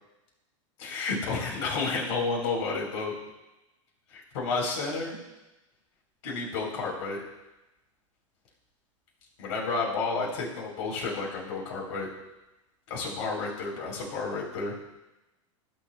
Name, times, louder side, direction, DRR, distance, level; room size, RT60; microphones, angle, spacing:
voice 1, 0.8-3.1 4.1-5.2 6.2-7.2 9.4-12.1 12.9-14.7, left 4 dB, 70° left, -2 dB, 3.6 m, -31 dB
16.5 x 7.1 x 2.2 m, 1.0 s
hypercardioid pair, 105°, 17 cm